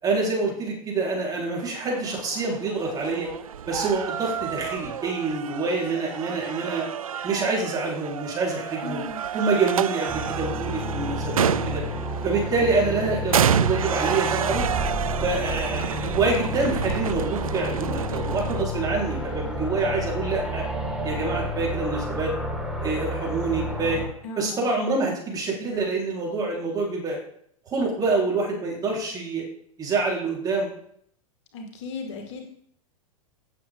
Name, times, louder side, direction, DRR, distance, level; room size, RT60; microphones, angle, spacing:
voice 1, 0.0-3.3 3.7-6.9 7.2-9.0 9.3-11.8 12.2-14.7 15.2-20.6 21.0-22.3 22.8-24.0 24.4-27.2 27.7-29.4 29.8-30.7, right 3 dB, 20° right, -2 dB, 4.1 m, -26 dB
sound 1, 1.6-18.6, right 9 dB, 70° right, 0.5 m, -30 dB
voice 2, 8.8-9.2 24.2-24.7 31.5-32.5, left 4 dB, 50° left, 4 dB, 1.9 m, -36 dB
sound 2, 10.1-24.1, equal, 5° right, 2.1 m, -30 dB
17.0 x 7.0 x 3.7 m, 0.68 s
figure-of-eight pair, 95°, 19 cm